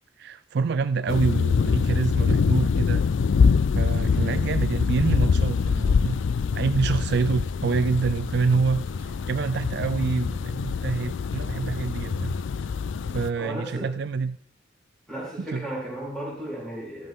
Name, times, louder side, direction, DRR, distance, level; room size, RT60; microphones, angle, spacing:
voice 1, 0.2-3.0 3.7-6.2 6.5-12.4 13.1-14.4 15.4-15.7, right 4 dB, 60° right, 12 dB, 0.4 m, -27 dB
sound 1, 1.1-13.3, left 5 dB, 75° left, 0.4 m, -24 dB
Fixed-wing aircraft airplane, 1.4-10.3, left 1 dB, 55° left, 3.0 m, -54 dB
voice 2, 13.4-13.9 15.1-17.1, right 1 dB, 5° left, -5 dB, 4.4 m, -35 dB
12.5 x 8.3 x 3.8 m, 0.67 s
head